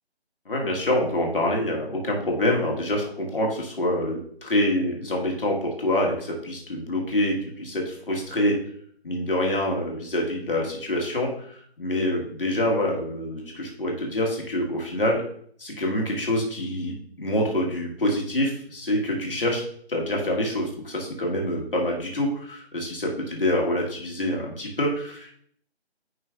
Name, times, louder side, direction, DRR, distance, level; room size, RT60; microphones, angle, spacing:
voice 1, 0.4-8.6 9.0-15.2 15.6-19.6 19.9-25.3, left 1 dB, 55° left, -1 dB, 1.7 m, -26 dB
9.8 x 4.4 x 2.5 m, 0.63 s
figure-of-eight pair, 165°, 33 cm